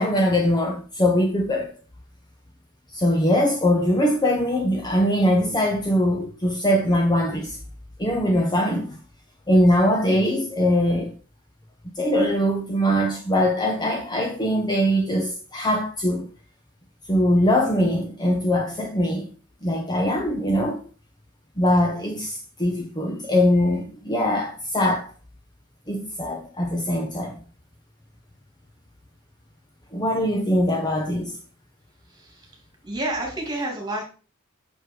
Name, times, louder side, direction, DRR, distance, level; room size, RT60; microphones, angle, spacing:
voice 1, 0.0-1.7 2.9-7.6 8.0-9.0 9.5-11.1 12.0-16.3 17.1-19.3 19.6-20.8 21.6-25.1 25.9-27.4 29.9-31.4, equal, 20° left, 0.9 m, -22 dB
voice 2, 32.1-32.5 32.8-34.0, right 1 dB, 20° right, 2.5 m, -29 dB
6.4 x 5.4 x 4.6 m
head